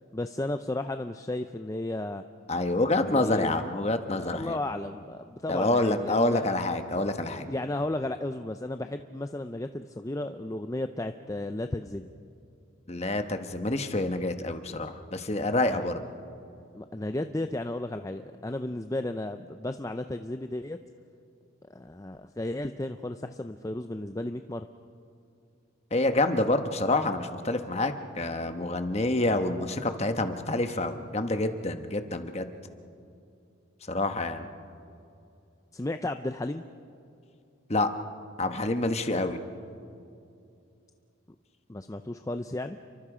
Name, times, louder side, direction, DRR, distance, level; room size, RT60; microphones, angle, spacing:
voice 1, 0.1-2.2 2.9-3.6 4.2-6.4 7.4-12.1 15.7-15.8 16.7-20.8 21.7-24.7 35.7-36.6 41.7-42.8, left 1 dB, 15° left, 8 dB, 0.5 m, -34 dB
voice 2, 2.5-4.6 5.5-7.5 12.9-16.0 25.9-32.5 33.9-34.5 37.7-37.9 38.4-39.4, left 2 dB, 30° left, 7 dB, 1.2 m, -27 dB
29.5 x 23.5 x 5.0 m, 2.6 s
head